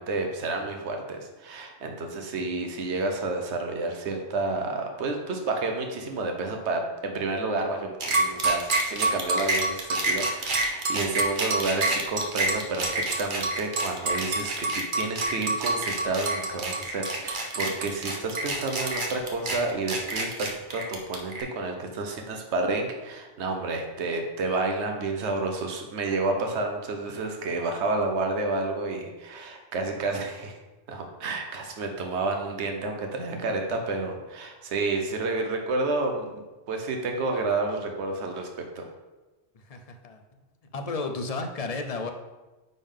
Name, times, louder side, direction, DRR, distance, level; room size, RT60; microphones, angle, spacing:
voice 1, 0.0-30.6 30.9-36.4 36.7-38.9, right 3 dB, 90° right, 3 dB, 1.1 m, -30 dB
sound 1, 8.0-21.4, right 2 dB, 50° right, 1.1 m, -27 dB
voice 2, 39.7-40.2 40.7-42.1, left 3 dB, 40° left, 5 dB, 0.6 m, -32 dB
9.4 x 3.6 x 3.7 m, 1.1 s
omnidirectional pair, 1.1 m